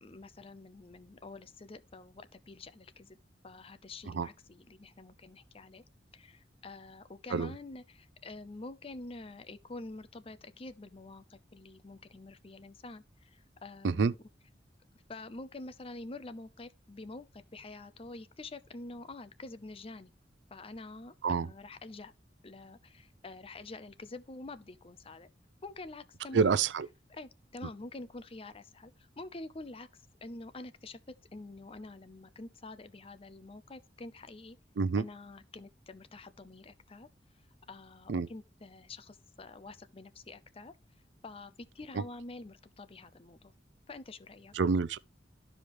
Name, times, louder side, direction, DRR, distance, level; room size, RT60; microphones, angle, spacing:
voice 1, 0.0-3.2 3.4-5.8 6.1-14.2 15.1-20.1 20.5-22.1 22.4-25.3 25.6-26.6 27.1-31.0 31.3-34.6 35.0-37.1 37.7-40.7 41.2-43.5 43.9-44.5, left 2 dB, 35° left, 0.6 m, -47 dB
voice 2, 26.3-26.9 34.8-35.0 38.1-38.3 44.6-45.0, right 5 dB, 90° right, 0.4 m, -27 dB
12.5 x 5.0 x 3.1 m
head